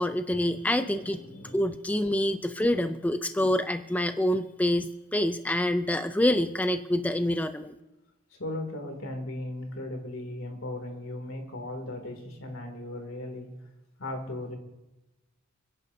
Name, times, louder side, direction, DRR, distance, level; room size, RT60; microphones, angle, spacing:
voice 1, 0.0-1.2 1.5-7.7, left 1 dB, 5° left, 9 dB, 0.4 m, -26 dB
voice 2, 0.7-1.7 8.4-13.5 14.0-14.6, left 1 dB, 80° left, 4 dB, 2.7 m, -37 dB
29.0 x 11.0 x 2.7 m, 0.97 s
head